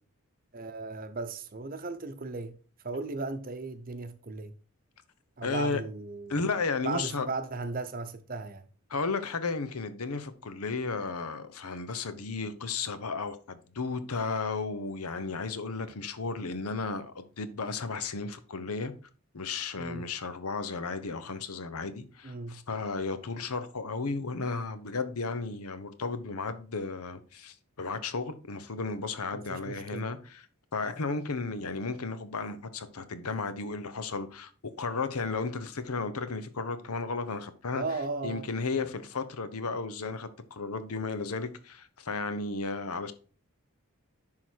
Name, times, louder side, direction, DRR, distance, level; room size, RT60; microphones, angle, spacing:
voice 1, 0.5-2.6 2.8-4.5 5.4-6.3 6.8-8.7 19.8-20.0 22.2-22.6 29.3-30.0 37.7-38.5, right 3 dB, 40° right, 0.8 m, -36 dB
voice 2, 5.4-5.8 6.3-7.3 8.9-18.9 19.3-30.4 30.7-34.5 34.8-37.8 38.2-43.1, left 4 dB, 80° left, 0.9 m, -34 dB
10.5 x 3.8 x 4.5 m
head